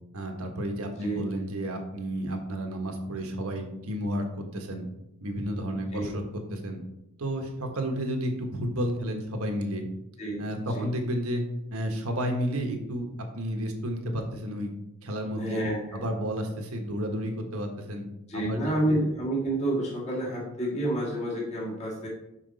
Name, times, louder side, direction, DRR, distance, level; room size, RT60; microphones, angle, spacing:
voice 1, 0.1-4.8 5.2-6.8 7.2-9.9 10.4-11.4 11.7-13.1 13.3-14.7 15.0-15.6 15.9-18.0 18.3-19.0, equal, 70° right, 3 dB, 1.3 m, -31 dB
voice 2, 5.7-6.1 10.2-10.4 10.7-10.9 15.4-16.0 18.3-22.1, right 1 dB, 30° left, -5 dB, 1.8 m, -29 dB
6.0 x 5.9 x 4.1 m, 0.88 s
head